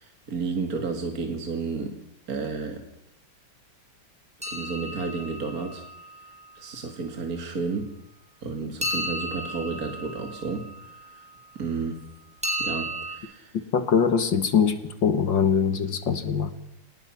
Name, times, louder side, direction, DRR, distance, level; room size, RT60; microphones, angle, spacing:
voice 1, 0.0-2.0 2.3-2.8 4.5-5.8 6.6-7.9 8.4-10.7 10.9-11.2 11.6-12.0 12.6-13.6, right 4 dB, 45° right, 4 dB, 2.6 m, -32 dB
sound 1, 4.4-6.5 8.8-11.2 12.4-13.2, equal, 5° right, 5.4 m, -33 dB
voice 2, 13.7-16.5, left 6 dB, 60° left, 10 dB, 2.3 m, -22 dB
26.0 x 20.0 x 5.9 m, 0.84 s
omnidirectional pair, 2.3 m